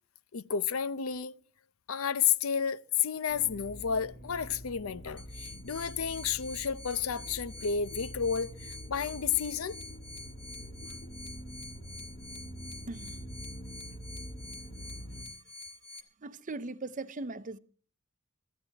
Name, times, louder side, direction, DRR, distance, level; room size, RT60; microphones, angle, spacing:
voice 1, 0.3-1.3 1.9-9.8 11.0-11.1, left 7 dB, 85° left, 0.6 m, -31 dB
sound 1, 3.3-15.2, equal, 45° left, 3.0 m, -45 dB
sound 2, 5.2-16.0, left 2 dB, 25° left, 1.6 m, -47 dB
voice 2, 12.9-13.2 16.2-17.6, right 3 dB, 40° right, 0.7 m, -39 dB
24.0 x 14.0 x 2.9 m
head